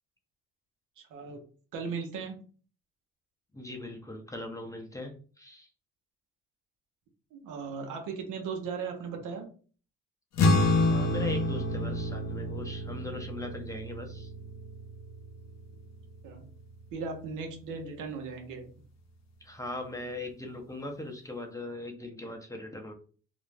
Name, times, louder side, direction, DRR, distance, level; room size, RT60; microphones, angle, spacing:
voice 1, 1.0-1.4 1.7-2.4 7.3-9.5 16.2-16.4 16.9-18.7, right 5 dB, 90° right, 3 dB, 0.8 m, -37 dB
voice 2, 3.5-5.7 10.9-14.3 19.4-22.9, left 1 dB, 10° left, 2 dB, 0.6 m, -40 dB
sound 1, 10.4-17.0, left 2 dB, 60° left, 0.6 m, -29 dB
2.5 x 2.0 x 3.2 m, 0.40 s
cardioid pair, 90°, 30 cm